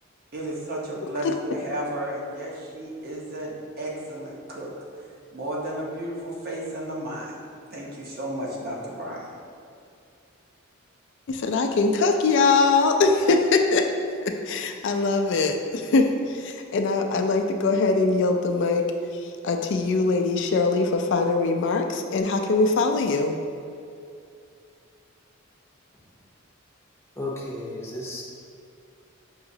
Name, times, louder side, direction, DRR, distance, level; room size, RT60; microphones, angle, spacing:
voice 1, 0.3-4.7 5.3-7.3 7.7-9.3, right 1 dB, 50° right, -3 dB, 0.8 m, -33 dB
voice 2, 11.3-13.8 14.2-18.8 19.1-23.4, left 3 dB, 60° left, 5 dB, 0.4 m, -22 dB
voice 3, 27.2-28.2, left 2 dB, 10° left, -4 dB, 0.6 m, -33 dB
5.6 x 2.9 x 2.7 m, 2.4 s
head